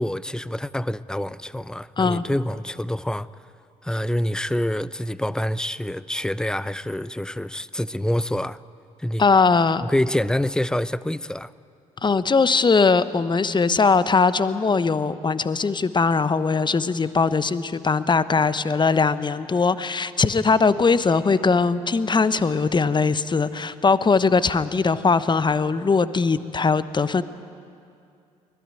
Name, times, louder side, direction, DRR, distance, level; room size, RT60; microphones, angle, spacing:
voice 1, 0.0-3.3 3.8-8.6 9.0-9.2 9.8-11.5, left 1 dB, 5° left, 0.7 m, -26 dB
voice 2, 9.2-9.9 12.0-27.2, left 4 dB, 25° left, 1.1 m, -20 dB
23.5 x 20.0 x 9.1 m
figure-of-eight pair, 50°, 19 cm